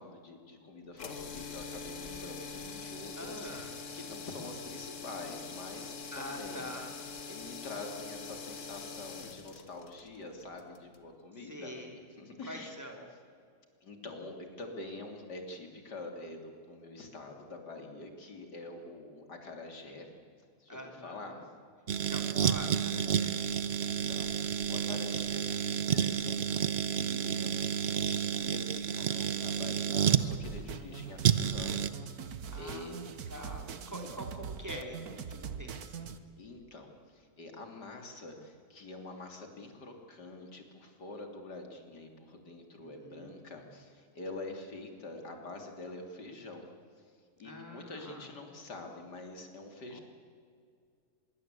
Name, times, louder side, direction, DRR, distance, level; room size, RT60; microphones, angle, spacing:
voice 1, 0.0-6.7 7.3-12.8 13.8-20.1 20.6-21.5 23.8-33.0 36.4-46.7 47.0-47.1 47.4-50.0, left 2 dB, 85° left, 4 dB, 3.6 m, -46 dB
sound 1, 0.9-11.1, left 5 dB, 50° left, 1.7 m, -44 dB
voice 2, 3.2-3.7 6.1-6.9 11.4-12.0 12.5-13.1 20.7-21.4 22.0-23.3 23.6-24.2 32.5-36.1 42.8-43.5 47.4-48.3 49.9-50.0, equal, 10° right, 1 dB, 3.4 m, -45 dB
sound 2, 21.9-30.3 31.2-31.9, right 8 dB, 50° right, 1.0 m, -30 dB
sound 3, 30.2-36.2, right 7 dB, 65° right, 1.7 m, -42 dB
25.0 x 22.5 x 8.3 m, 2.3 s
omnidirectional pair, 1.7 m